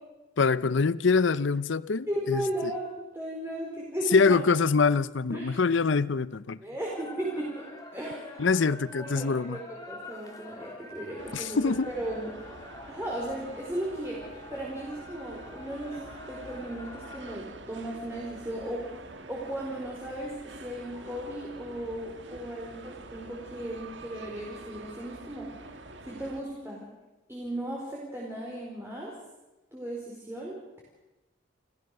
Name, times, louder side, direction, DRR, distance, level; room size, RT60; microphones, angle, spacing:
voice 1, 0.4-2.4 4.1-6.6 8.4-9.6 11.3-11.9, left 4 dB, 65° left, 0.6 m, -24 dB
voice 2, 2.1-4.4 5.3-5.6 6.6-7.6 7.9-8.4 9.0-12.3 12.9-14.2 14.5-16.0 16.3-18.9 19.3-20.3 20.6-25.8 26.0-26.9 27.3-29.1 29.7-30.5, right 1 dB, 10° right, 4.6 m, -36 dB
sound 1, 6.8-17.4, left 2 dB, 20° left, 3.2 m, -46 dB
sound 2, 11.2-26.4, right 2 dB, 60° right, 1.8 m, -46 dB
29.5 x 15.5 x 6.7 m
head